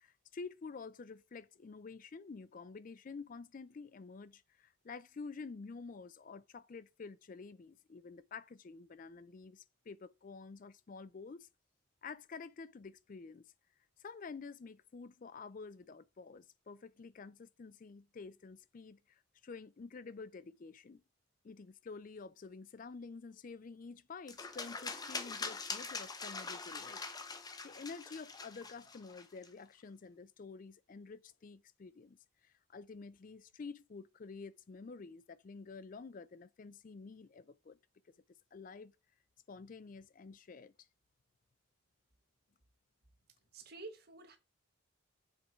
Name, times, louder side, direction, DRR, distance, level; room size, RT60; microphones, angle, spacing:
voice 1, 0.0-11.5 12.0-13.4 14.0-21.0 21.4-27.0 27.4-32.2 32.4-37.8 38.5-38.9 39.5-40.7, left 4 dB, 40° left, 0.4 m, -49 dB
sound 1, 24.3-29.5, left 4 dB, 20° left, 0.7 m, -43 dB
voice 2, 43.5-44.4, right 3 dB, 50° right, 1.5 m, -49 dB
7.2 x 4.4 x 4.9 m
head